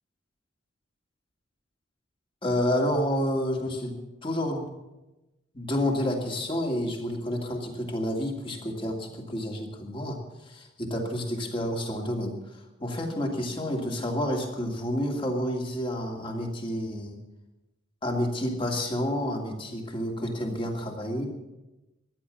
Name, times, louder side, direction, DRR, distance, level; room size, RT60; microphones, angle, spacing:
voice 1, 2.4-4.7 5.5-10.2 10.5-12.4 12.8-17.2 18.0-21.3, left 1 dB, 25° left, 1 dB, 2.4 m, -29 dB
15.0 x 11.0 x 7.0 m, 1.0 s
head